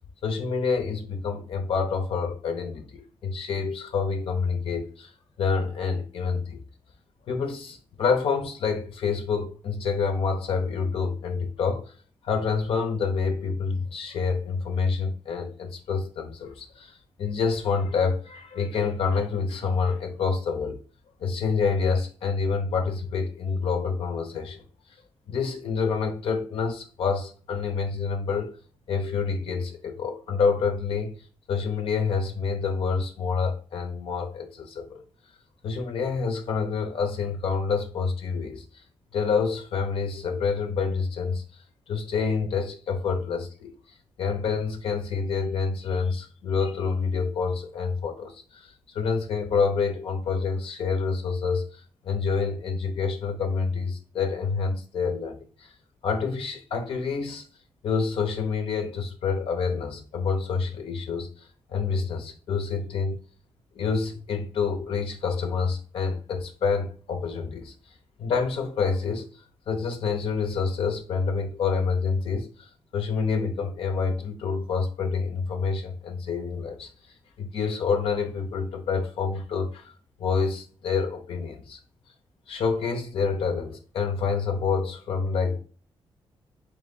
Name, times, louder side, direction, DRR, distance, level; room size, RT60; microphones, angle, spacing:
voice 1, 0.2-5.1 5.4-6.6 7.3-11.9 12.2-20.8 21.2-24.6 25.3-28.5 28.9-31.1 31.5-35.0 35.6-38.8 39.1-43.7 44.2-55.8 56.0-57.4 57.8-63.2 63.7-67.7 68.2-76.9 77.4-79.9 80.2-81.8 82.5-85.6, left 5 dB, 75° left, 0.8 m, -27 dB
3.4 x 3.0 x 4.0 m
cardioid pair, 95°, 10 cm